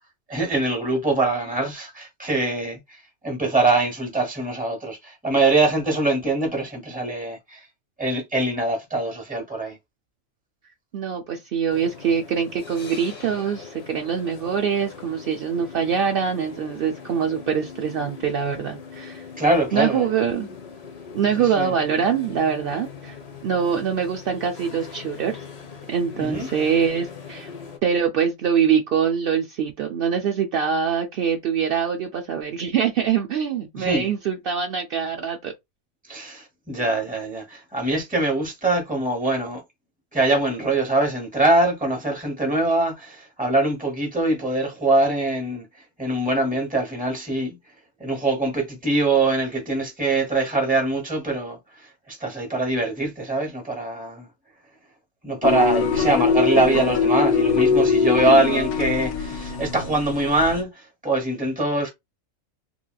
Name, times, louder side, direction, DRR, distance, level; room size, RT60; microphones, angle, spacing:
voice 1, 0.3-3.0 3.2-7.6 8.0-9.8 19.4-20.1 21.4-21.7 26.1-26.5 33.8-34.1 36.1-39.6 40.1-45.6 46.0-47.6 48.0-51.6 52.1-54.3 55.2-61.9, right 2 dB, 5° right, 0.8 m, -23 dB
voice 2, 10.9-19.2 19.7-20.5 21.1-25.3 25.9-27.5 27.8-35.5, right 7 dB, 80° right, 0.5 m, -24 dB
sound 1, 11.7-27.8, left 6 dB, 50° left, 0.4 m, -41 dB
sound 2, 55.4-60.6, left 5 dB, 90° left, 1.1 m, -22 dB
3.1 x 2.9 x 2.2 m
omnidirectional pair, 1.5 m